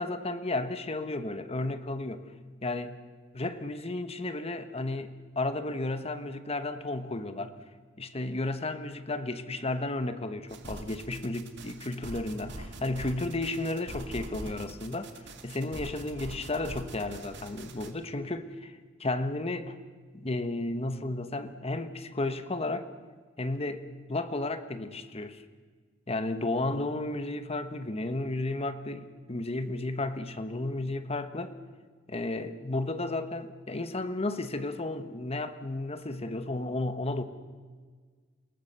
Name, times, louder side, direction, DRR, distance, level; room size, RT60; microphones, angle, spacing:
voice 1, 0.0-2.3 2.6-3.0 3.3-7.5 8.0-15.1 15.4-19.7 20.1-22.9 23.4-25.4 26.1-31.6 32.1-37.2, left 2 dB, 30° left, 10 dB, 1.2 m, -33 dB
sound 1, 10.5-17.9, right 1 dB, 65° right, 2.2 m, -43 dB
28.0 x 18.5 x 6.8 m, 1.6 s
head